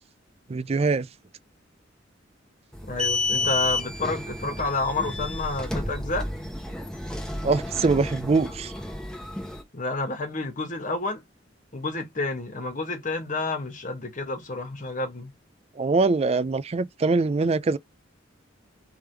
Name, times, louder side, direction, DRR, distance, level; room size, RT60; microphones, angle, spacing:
voice 1, 0.5-1.1 7.4-8.7 15.8-17.8, right 3 dB, 30° right, 0.4 m, -23 dB
sound 1, 2.7-9.6, left 2 dB, 5° left, 0.9 m, -31 dB
voice 2, 2.8-6.3 9.7-11.2 11.7-15.3, left 3 dB, 40° left, 1.3 m, -30 dB
3.5 x 3.3 x 4.5 m
head